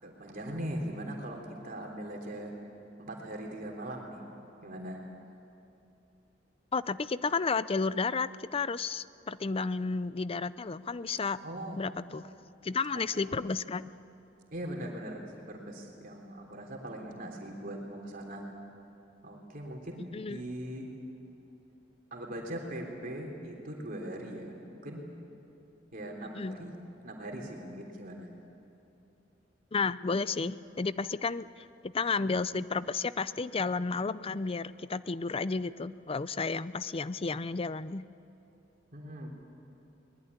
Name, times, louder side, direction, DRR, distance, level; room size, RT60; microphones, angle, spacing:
voice 1, 0.0-2.5 3.0-4.2 4.6-5.0 11.4-11.8 12.9-13.3 14.5-18.4 19.2-20.9 22.1-25.1 25.9-26.7 27.0-28.3 38.9-39.3, right 1 dB, 50° right, 0 dB, 3.4 m, -40 dB
voice 2, 6.7-11.4 11.8-12.3 12.6-13.9 20.1-20.4 26.3-26.6 29.7-38.0, left 4 dB, 30° left, 16 dB, 0.5 m, -32 dB
22.5 x 20.5 x 9.6 m, 2.9 s
head